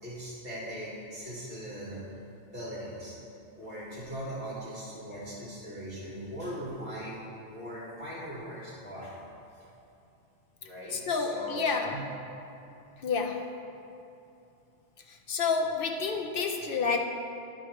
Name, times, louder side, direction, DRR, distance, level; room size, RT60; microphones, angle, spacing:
voice 1, 0.0-2.0 2.4-3.2 3.6-7.2 7.5-9.2 10.6-11.7 11.9-12.0, equal, 50° right, -7 dB, 2.5 m, -40 dB
voice 2, 10.9-12.0 13.0-13.5 15.3-17.0, left 5 dB, 55° left, 3 dB, 0.7 m, -29 dB
11.0 x 4.6 x 4.4 m, 2.7 s
omnidirectional pair, 1.3 m